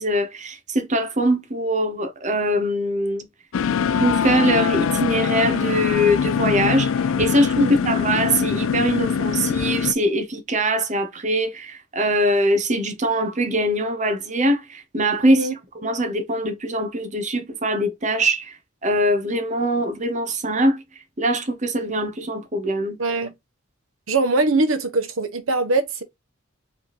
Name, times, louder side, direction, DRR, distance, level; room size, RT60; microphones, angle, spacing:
voice 1, 0.0-3.3 4.0-6.9 7.2-18.5 18.8-20.8 21.2-23.0, equal, 35° right, 0.9 m, -22 dB
sound 1, 3.5-9.9, left 6 dB, 85° left, 0.4 m, -23 dB
voice 2, 7.6-7.9 15.2-15.5 23.0-23.3 24.1-26.0, right 3 dB, 85° right, 1.0 m, -22 dB
4.9 x 3.5 x 3.0 m
head